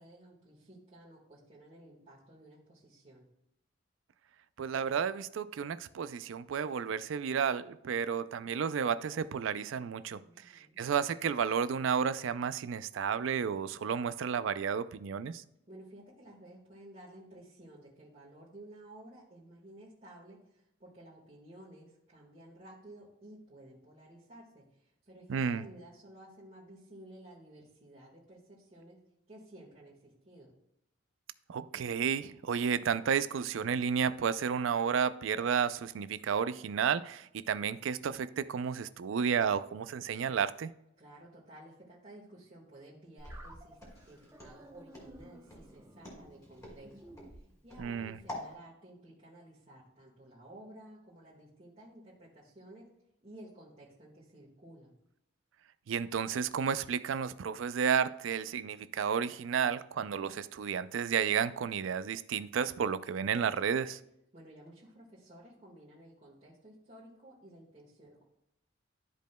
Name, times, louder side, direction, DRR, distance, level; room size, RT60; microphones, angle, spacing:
voice 1, 0.0-3.3 10.2-10.8 15.7-29.0 29.3-30.5 41.0-43.8 44.1-52.9 53.2-54.9 64.3-68.2, right 1 dB, 35° right, 1.5 m, -54 dB
voice 2, 4.6-15.4 25.3-25.6 31.5-40.7 47.8-48.2 55.9-64.0, right 7 dB, 70° right, 0.4 m, -32 dB
Walk footsteps, 43.2-48.5, left 1 dB, 15° left, 2.4 m, -47 dB
sound 1, 43.3-48.2, right 1 dB, 15° right, 0.7 m, -56 dB
12.5 x 5.1 x 2.2 m
head